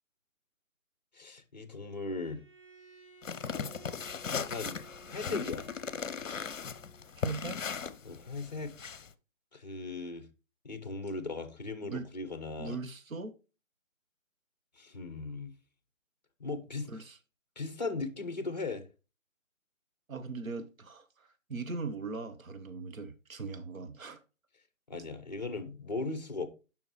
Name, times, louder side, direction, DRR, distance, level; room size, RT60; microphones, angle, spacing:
voice 1, 1.1-2.4 4.3-4.8 5.1-5.7 8.0-8.7 9.5-10.2 10.6-12.8 14.8-15.5 16.4-16.9 17.6-18.9 24.9-26.5, left 3 dB, 30° left, 0.7 m, -38 dB
Bowed string instrument, 2.2-7.1, right 2 dB, 20° right, 1.2 m, -56 dB
sound 1, 3.2-9.1, left 6 dB, 70° left, 0.7 m, -38 dB
voice 2, 7.2-7.6 11.8-12.1 12.6-13.3 16.9-17.2 20.1-24.2, right 4 dB, 80° right, 1.0 m, -40 dB
7.0 x 5.6 x 2.9 m
figure-of-eight pair, 155°, 41 cm